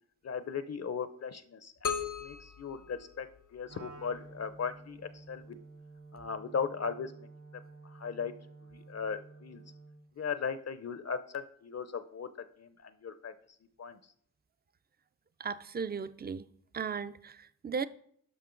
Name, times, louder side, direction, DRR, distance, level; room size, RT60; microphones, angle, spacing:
voice 1, 0.2-1.9 2.2-5.6 6.1-7.3 7.8-8.3 8.7-9.6 10.2-12.3 12.6-13.3 13.8-14.0, left 6 dB, 55° left, 0.6 m, -37 dB
sound 1, 1.8-3.8, left 6 dB, 80° left, 0.8 m, -37 dB
Wind instrument woodwind instrument, 3.7-10.0, right 3 dB, 75° right, 3.3 m, -52 dB
voice 2, 15.4-16.5 16.7-17.9, right 6 dB, 30° right, 0.4 m, -36 dB
12.5 x 5.2 x 3.8 m
wide cardioid pair, 75°, 31 cm